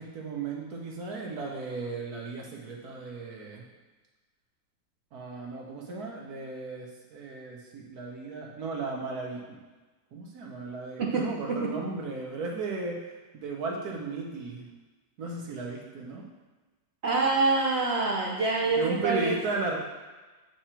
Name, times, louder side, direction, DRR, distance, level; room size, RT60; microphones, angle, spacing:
voice 1, 0.0-3.7 5.1-9.6 10.1-13.0 13.3-14.7 15.2-16.3 18.8-19.8, right 3 dB, 60° right, -1 dB, 1.6 m, -35 dB
voice 2, 11.0-11.7 17.0-19.4, right 3 dB, 80° right, -1 dB, 0.5 m, -26 dB
9.0 x 3.3 x 4.4 m, 1.2 s
omnidirectional pair, 1.9 m